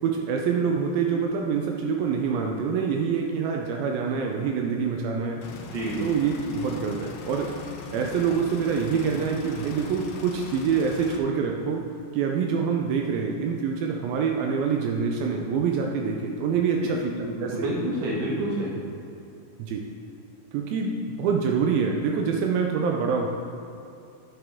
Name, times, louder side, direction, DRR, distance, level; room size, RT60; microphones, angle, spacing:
voice 1, 0.0-5.4 6.0-7.5 7.9-11.8 12.1-17.0 17.4-17.7 19.6-19.9 20.5-23.3, right 6 dB, 85° right, 1 dB, 2.4 m, -26 dB
sound 1, 5.4-11.2, left 5 dB, 80° left, 2.6 m, -40 dB
voice 2, 17.2-18.7, right 1 dB, 55° right, -5 dB, 2.7 m, -28 dB
9.7 x 7.8 x 3.6 m, 2.6 s
omnidirectional pair, 4.1 m